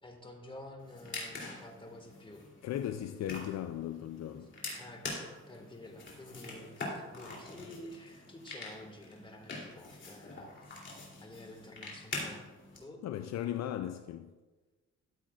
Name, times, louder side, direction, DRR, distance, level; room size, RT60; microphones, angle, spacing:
voice 1, 0.0-2.4 4.7-5.2 5.5-12.5 12.8-13.0, left 1 dB, 15° left, 1.8 m, -50 dB
sound 1, 0.8-12.8, left 2 dB, 40° left, 3.0 m, -45 dB
voice 2, 2.6-4.5 13.0-14.3, left 11 dB, 60° left, 0.5 m, -37 dB
13.5 x 7.5 x 2.4 m
cardioid pair, 90°, 30 cm